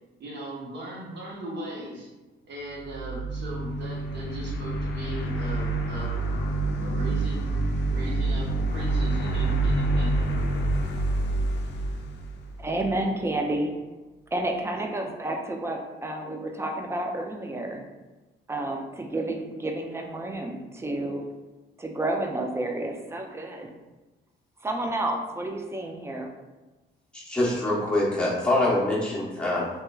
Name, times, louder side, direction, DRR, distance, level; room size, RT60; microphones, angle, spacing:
voice 1, 0.2-2.1 2.5-6.2 6.8-7.6 7.9-10.4, right 1 dB, 60° right, -4 dB, 0.9 m, -38 dB
sound 1, 2.7-13.0, right 2 dB, 60° left, 0.4 m, -27 dB
voice 2, 12.6-13.7 14.3-17.8 18.5-21.3 21.8-23.7 24.6-26.3, right 1 dB, 15° right, 3 dB, 0.3 m, -30 dB
voice 3, 27.1-29.7, left 1 dB, 5° left, -7 dB, 0.8 m, -25 dB
2.9 x 2.3 x 2.2 m, 1.1 s
cardioid pair, 90°, 20 cm